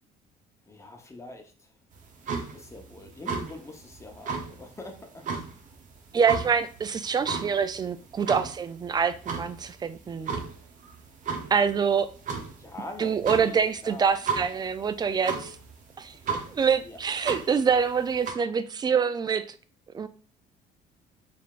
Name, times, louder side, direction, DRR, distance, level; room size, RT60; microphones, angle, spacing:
voice 1, 0.6-1.7 2.5-5.3 8.2-8.5 12.6-14.1 16.8-17.0, left 2 dB, 15° left, 0.8 m, -43 dB
sound 1, 1.9-18.3, right 5 dB, 50° right, 0.8 m, -36 dB
voice 2, 6.1-10.3 11.5-12.1 13.0-15.6 16.0-19.5 19.9-20.1, right 6 dB, 25° right, 0.3 m, -25 dB
3.8 x 3.4 x 2.4 m
cardioid pair, 110°, 17 cm